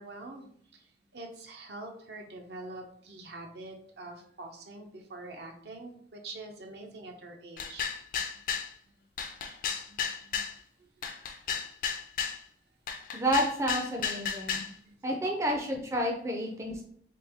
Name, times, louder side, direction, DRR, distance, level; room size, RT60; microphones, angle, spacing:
voice 1, 0.0-7.9 8.3-8.5 8.8-8.9 9.2-9.3 9.9-10.4 10.8-10.9 11.6-11.7 14.8-15.0 15.2-15.3, right 2 dB, 70° right, 3 dB, 0.7 m, -45 dB
sound 1, 7.6-8.7 9.2-10.5 11.0-12.4 12.9-14.7, left 7 dB, 50° left, 0.4 m, -33 dB
voice 2, 13.1-14.6 15.0-16.8, equal, 15° right, 1 dB, 0.4 m, -30 dB
3.3 x 3.0 x 3.4 m, 0.63 s
head